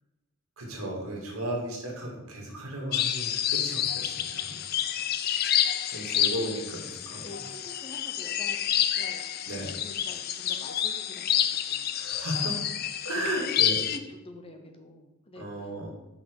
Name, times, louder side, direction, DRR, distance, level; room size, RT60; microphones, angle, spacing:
voice 1, 0.6-4.6 5.9-7.2 9.5-9.7 11.9-12.6 13.0-13.8 15.4-15.9, right 1 dB, 80° right, -1 dB, 2.1 m, -34 dB
sound 1, 2.9-14.0, left 10 dB, 45° left, 0.4 m, -29 dB
voice 2, 7.2-9.3 9.8-11.4 11.7-11.9 13.1-13.3 13.8-15.5, left 1 dB, 25° left, 5 dB, 0.7 m, -47 dB
5.9 x 5.4 x 4.6 m, 1.0 s
head